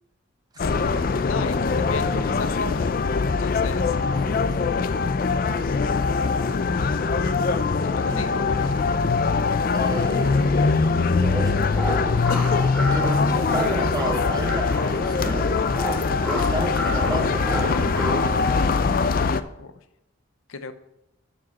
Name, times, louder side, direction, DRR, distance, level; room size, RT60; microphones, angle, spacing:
voice 1, 0.6-2.9 3.3-4.0 6.2-6.3 7.8-8.7 19.6-19.7 20.5-20.7, left 4 dB, 80° left, 11 dB, 0.7 m, -35 dB
sound 1, 0.6-19.4, left 4 dB, 45° left, 0.4 m, -22 dB
voice 2, 4.0-4.8 8.1-8.4 9.7-11.6 12.9-15.4 16.2-18.8, right 1 dB, 20° right, 6 dB, 0.8 m, -33 dB
sound 2, 11.2-18.2, equal, 5° left, 1.7 m, -31 dB
7.7 x 6.1 x 5.9 m, 0.87 s
head